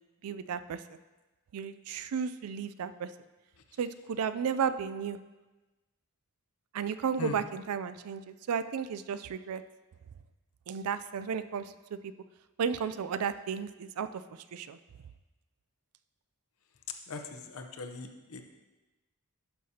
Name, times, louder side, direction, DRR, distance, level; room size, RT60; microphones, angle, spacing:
voice 1, 0.2-0.8 1.5-3.1 3.8-5.2 6.7-9.6 10.7-11.7 12.6-14.1 14.5-14.8, right 6 dB, 80° right, 13 dB, 0.4 m, -33 dB
voice 2, 17.1-18.4, left 3 dB, 70° left, 5 dB, 0.7 m, -40 dB
11.5 x 5.7 x 2.8 m, 1.1 s
head